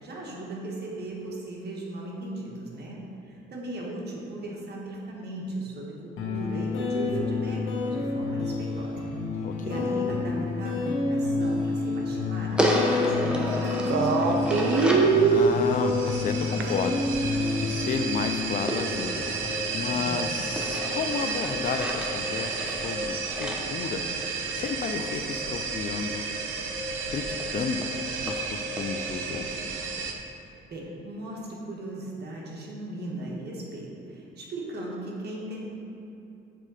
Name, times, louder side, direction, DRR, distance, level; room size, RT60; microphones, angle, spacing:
voice 1, 0.0-9.0 9.6-12.6 13.0-14.7 19.9-20.4 30.7-35.7, right 2 dB, 55° right, -2 dB, 1.5 m, -37 dB
sound 1, 6.2-21.2, left 3 dB, 80° left, 1.1 m, -30 dB
voice 2, 9.4-9.9 15.2-19.3 19.7-26.3 27.1-27.9 28.2-29.5, left 5 dB, 40° left, 7 dB, 0.5 m, -32 dB
sound 2, 12.6-15.2 18.7-20.1 20.6-24.7 26.6-26.7 27.0-27.1 27.4-27.5 27.8-27.9 28.3-28.4 28.8-28.9, equal, 5° right, 0.8 m, -31 dB
sound 3, 13.5-30.1, right 4 dB, 75° right, 0.7 m, -29 dB
7.6 x 3.7 x 4.9 m, 2.9 s
cardioid pair, 90°, 20 cm